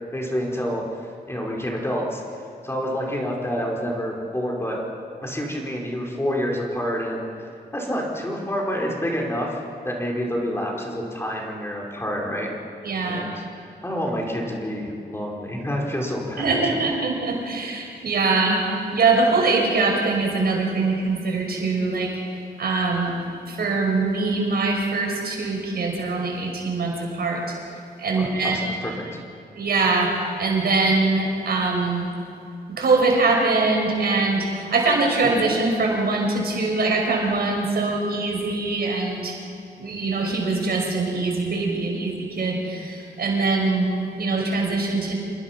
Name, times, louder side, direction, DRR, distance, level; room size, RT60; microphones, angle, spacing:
voice 1, 0.1-0.8 1.3-2.2 2.6-4.8 5.2-7.2 7.7-12.5 13.1-13.4 13.8-16.7 28.1-29.1, equal, 15° left, -2 dB, 4.7 m, -28 dB
voice 2, 12.8-13.2 16.4-18.6 18.9-22.1 22.6-23.1 23.5-27.6 28.0-28.6 29.6-32.1 32.8-39.4 39.8-45.1, right 3 dB, 70° right, 0 dB, 5.5 m, -23 dB
27.5 x 20.5 x 6.0 m, 2.4 s
cardioid pair, 85°, 17 cm